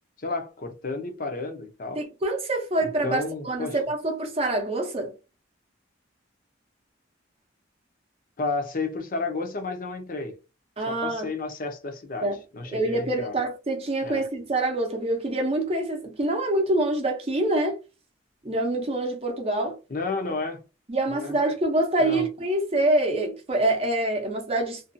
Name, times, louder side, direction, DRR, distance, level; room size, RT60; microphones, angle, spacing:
voice 1, 0.2-2.0 3.0-3.8 8.4-10.3 10.9-13.4 14.0-14.2 19.9-20.6 21.1-21.3 22.0-22.2, left 3 dB, 45° left, 0.6 m, -32 dB
voice 2, 2.0-5.1 10.8-11.3 12.2-12.4 12.7-17.8 18.4-19.8 20.9-24.8, right 2 dB, 30° right, 0.6 m, -26 dB
2.6 x 2.3 x 2.5 m
head